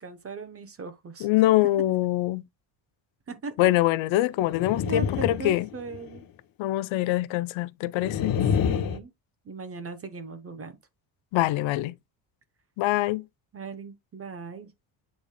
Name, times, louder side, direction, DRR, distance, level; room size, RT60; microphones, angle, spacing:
voice 1, 0.0-1.3 1.8-1.9 3.3-3.7 4.8-6.3 8.7-9.1 9.4-10.8 13.5-14.7, right 4 dB, 30° right, 0.9 m, -38 dB
voice 2, 1.2-2.4 3.6-5.7 6.6-8.4 11.3-11.9 12.8-13.2, left 15 dB, 85° left, 0.6 m, -24 dB
sound 1, 4.4-6.2 8.0-9.0, left 7 dB, 50° left, 0.9 m, -27 dB
8.4 x 5.1 x 2.2 m
cardioid pair, 135°, 45 cm